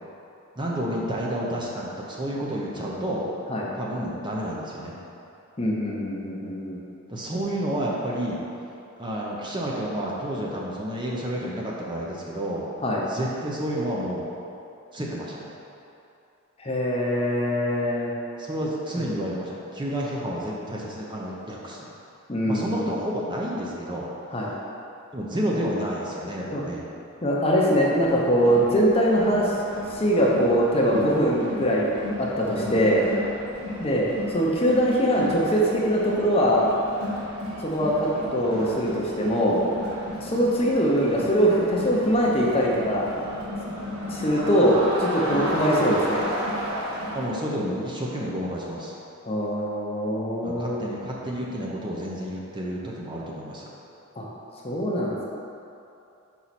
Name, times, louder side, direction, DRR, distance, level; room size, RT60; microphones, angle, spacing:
voice 1, 0.6-3.3 3.7-5.0 7.1-8.4 9.0-12.6 13.0-14.3 14.9-15.5 18.4-21.9 22.5-24.1 25.1-26.8 32.6-32.8 47.1-48.9 50.4-53.7, equal, 20° right, -4 dB, 0.6 m, -30 dB
voice 2, 5.6-6.8 12.8-13.0 16.6-18.1 22.3-22.8 24.3-24.5 26.5-26.6 27.2-29.5 29.9-31.9 32.2-33.1 33.8-34.1 34.3-36.7 37.6-39.6 40.2-43.1 44.1-46.3 49.3-50.7 54.2-54.3 54.6-55.3, equal, 25° left, -3 dB, 0.7 m, -22 dB
Crowd, 28.0-47.4, equal, 70° right, 1.1 m, -34 dB
5.4 x 4.5 x 4.1 m, 2.7 s
head